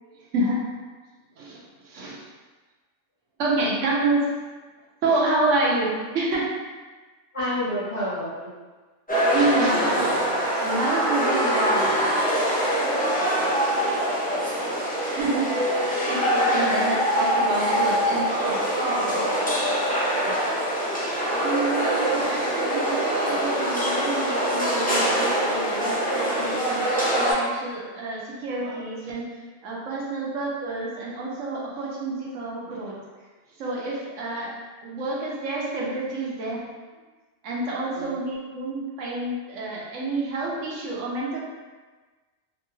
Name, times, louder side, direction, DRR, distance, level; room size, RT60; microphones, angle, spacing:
voice 1, 0.0-0.6 1.4-2.2 3.4-4.2 5.0-6.5 9.3-12.1 12.7-13.0 15.1-19.2 21.4-33.0 33.6-34.5 34.8-36.6 37.4-41.4, right 2 dB, 85° right, -4 dB, 1.1 m, -28 dB
voice 2, 7.3-8.5 13.8-14.2 20.2-20.5 37.9-38.1, equal, 30° left, -10 dB, 0.9 m, -30 dB
sound 1, 9.1-27.3, equal, 10° left, 0.5 m, -24 dB
3.1 x 2.3 x 3.0 m, 1.3 s
omnidirectional pair, 1.2 m